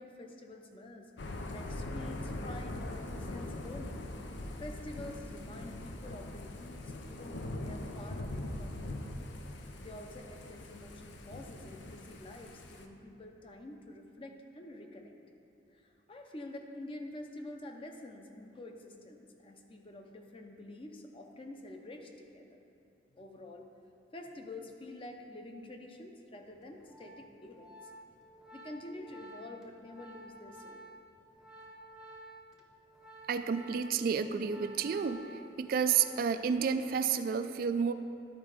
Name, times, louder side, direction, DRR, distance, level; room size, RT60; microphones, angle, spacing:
voice 1, 0.0-4.0 4.6-9.0 9.8-15.1 15.7-22.4 23.1-23.7 24.1-27.9 28.5-30.9, left 1 dB, 30° left, 3 dB, 0.7 m, -48 dB
Thunder / Rain, 1.2-12.9, left 1 dB, 90° left, 0.6 m, -42 dB
Organ, 26.6-36.6 36.9-37.2, right 1 dB, 5° right, 0.7 m, -52 dB
voice 2, 33.3-35.2 35.6-37.9, right 6 dB, 55° right, 10 dB, 0.3 m, -30 dB
11.5 x 4.4 x 4.9 m, 2.6 s
head